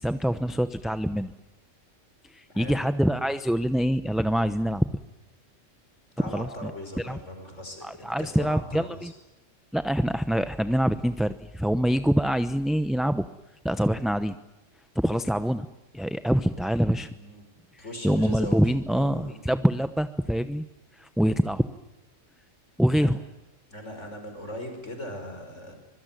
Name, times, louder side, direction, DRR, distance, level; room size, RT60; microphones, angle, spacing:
voice 1, 0.0-1.3 2.2-4.9 6.3-6.7 7.0-7.2 7.8-9.1 9.7-13.2 13.6-14.4 14.9-15.7 15.9-17.1 17.7-20.6 20.9-21.6 22.8-23.2, equal, ahead, 10 dB, 0.7 m, -25 dB
voice 2, 6.2-9.1 17.1-17.4 17.8-18.6 18.9-19.4 23.0-23.1 23.7-25.8, left 1 dB, 70° left, 5 dB, 5.9 m, -39 dB
25.0 x 22.5 x 9.2 m, 1.0 s
omnidirectional pair, 1.3 m